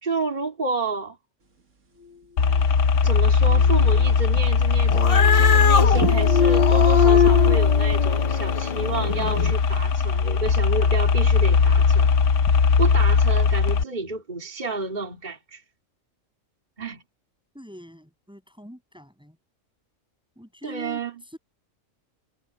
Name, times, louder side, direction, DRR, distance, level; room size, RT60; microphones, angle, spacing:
voice 1, 0.0-1.2 3.0-12.1 12.8-15.6 16.8-17.0 20.6-21.2, right 3 dB, 35° right, 2.7 m, -30 dB
sound 1, 2.4-13.8, left 5 dB, 65° left, 1.3 m, -19 dB
sound 2, 3.5-4.5 4.8-5.7 5.9-7.6, left 5 dB, 65° right, 2.3 m, -23 dB
Cat, 4.9-9.5, left 6 dB, 45° left, 0.4 m, -25 dB
voice 2, 17.5-19.4 20.4-21.4, equal, 5° right, 7.9 m, -43 dB
omnidirectional pair, 1.4 m